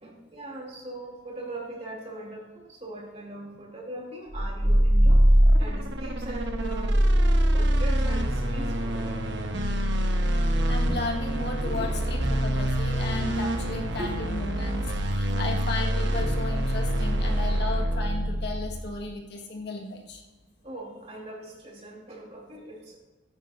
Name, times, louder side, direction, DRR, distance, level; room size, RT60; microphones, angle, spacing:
voice 1, 0.0-5.2 5.6-6.9 7.5-9.3 11.6-11.9 13.6-14.2 17.0-17.1 20.6-23.0, right 1 dB, 30° right, -3 dB, 2.7 m, -40 dB
sound 1, 4.3-18.9, equal, 65° right, 1.1 m, -24 dB
voice 2, 10.5-20.2, left 3 dB, 55° left, 1 dB, 1.5 m, -35 dB
14.5 x 10.0 x 2.6 m, 1.2 s
head